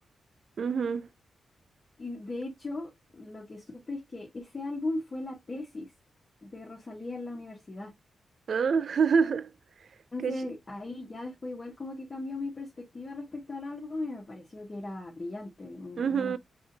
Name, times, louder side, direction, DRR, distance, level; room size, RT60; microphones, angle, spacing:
voice 1, 0.6-1.1 8.5-9.5 10.2-10.4 16.0-16.4, right 6 dB, 60° right, 0.4 m, -26 dB
voice 2, 2.0-5.9 6.4-7.9 10.1-16.4, left 2 dB, 30° left, 1.5 m, -38 dB
5.0 x 3.5 x 2.6 m
wide cardioid pair, 105°, 0 cm